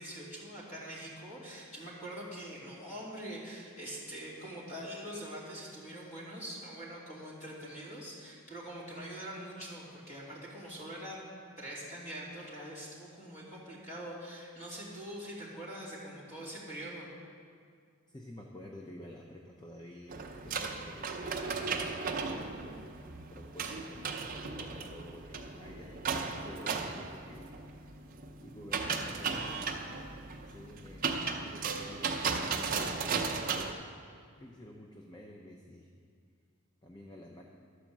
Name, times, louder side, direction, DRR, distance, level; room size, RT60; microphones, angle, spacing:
voice 1, 0.0-11.2 11.6-17.1, right 1 dB, 35° left, -6 dB, 2.7 m, -44 dB
voice 2, 18.1-20.2 20.4-23.0 23.3-26.1 26.4-28.0 28.4-29.8 30.5-31.1 31.4-33.2 34.4-35.9 36.8-37.4, left 1 dB, 20° left, 0 dB, 0.6 m, -50 dB
sound 1, 20.1-33.7, right 5 dB, 40° right, 0.6 m, -36 dB
11.5 x 5.0 x 7.2 m, 2.2 s
head